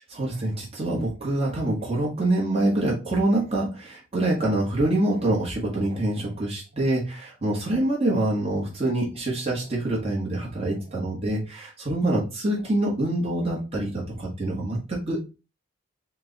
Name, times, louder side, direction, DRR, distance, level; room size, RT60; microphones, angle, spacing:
voice 1, 0.1-15.2, right 1 dB, 30° right, -4 dB, 1.2 m, -25 dB
4.5 x 2.3 x 3.9 m, 0.29 s
head